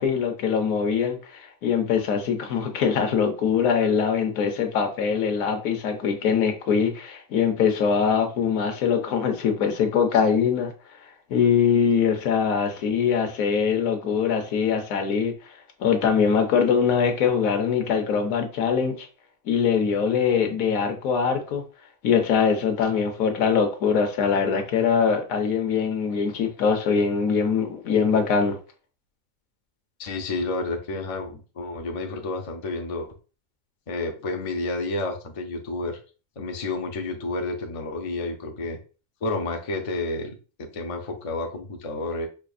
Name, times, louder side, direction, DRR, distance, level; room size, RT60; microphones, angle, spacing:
voice 1, 0.0-10.7 11.3-15.3 15.8-19.1 19.5-21.6 22.0-28.6, left 6 dB, 90° left, 1.2 m, -22 dB
voice 2, 30.0-33.1 33.9-36.0 36.4-38.8 39.2-42.3, left 2 dB, 45° left, 0.4 m, -30 dB
5.0 x 2.5 x 2.3 m
omnidirectional pair, 1.4 m